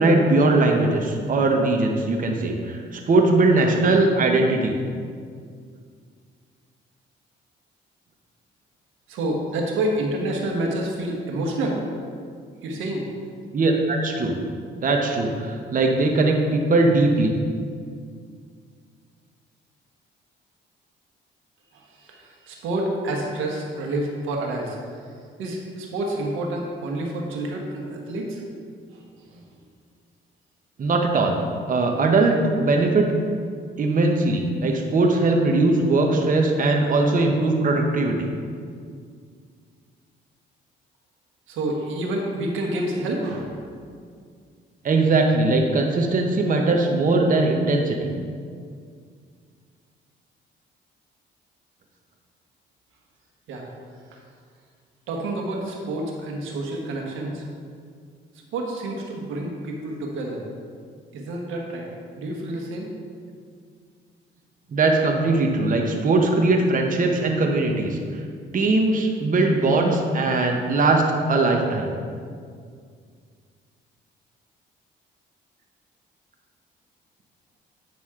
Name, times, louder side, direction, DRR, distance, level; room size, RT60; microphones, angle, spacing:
voice 1, 0.0-4.7 13.5-14.4 14.8-17.3 30.8-31.4 31.7-33.1 33.8-38.3 44.8-48.1 64.7-68.2 68.5-71.9, right 2 dB, 45° right, 2 dB, 0.9 m, -20 dB
voice 2, 9.1-11.8 12.6-13.1 21.7-25.1 25.4-28.4 28.9-29.6 41.5-43.7 53.5-53.7 54.1-54.2 55.1-57.4 58.5-60.4 61.1-61.9 62.2-62.9, right 1 dB, 90° right, 0 dB, 1.3 m, -28 dB
9.3 x 6.1 x 3.7 m, 2.1 s
cardioid pair, 90°, 20 cm